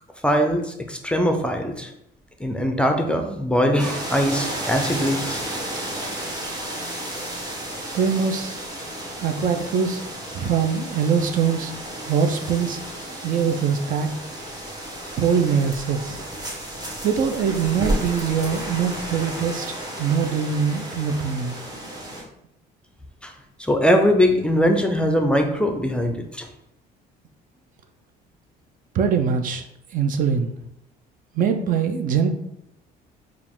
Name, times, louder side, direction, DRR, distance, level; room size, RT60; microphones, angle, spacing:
voice 1, 0.2-1.9 2.4-5.4 23.2-23.3 23.6-26.5, equal, 5° left, 4 dB, 0.5 m, -21 dB
sound 1, 3.8-22.2, right 1 dB, 25° right, 1.2 m, -32 dB
voice 2, 7.9-8.6 9.2-10.0 10.3-11.7 12.0-12.8 13.2-14.1 15.2-16.2 17.0-19.7 20.0-21.6 28.9-29.6 29.9-30.5 31.3-32.3, right 6 dB, 55° right, 7 dB, 0.5 m, -22 dB
4.7 x 2.4 x 3.5 m, 0.78 s
cardioid pair, 110°, 17 cm